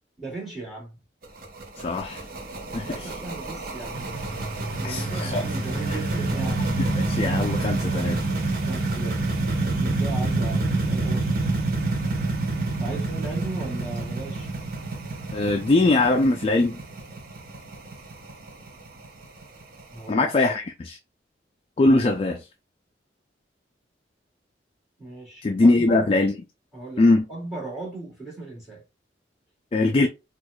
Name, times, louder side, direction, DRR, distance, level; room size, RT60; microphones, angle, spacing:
voice 1, 0.2-1.0 2.7-4.2 4.7-6.6 8.7-9.2 9.6-11.5 12.8-14.5 14.9-15.1 19.9-20.3 25.0-26.1 26.7-28.8, right 2 dB, ahead, 2.0 m, -37 dB
sound 1, 1.2-20.0, right 2 dB, 55° right, 0.7 m, -28 dB
voice 2, 1.8-2.2 2.7-3.1 4.8-5.5 6.9-8.2 15.3-16.8 20.1-21.0 21.8-22.5 25.4-26.3 27.0-27.2 29.7-30.1, left 2 dB, 30° left, 0.3 m, -21 dB
4.5 x 2.3 x 2.2 m
head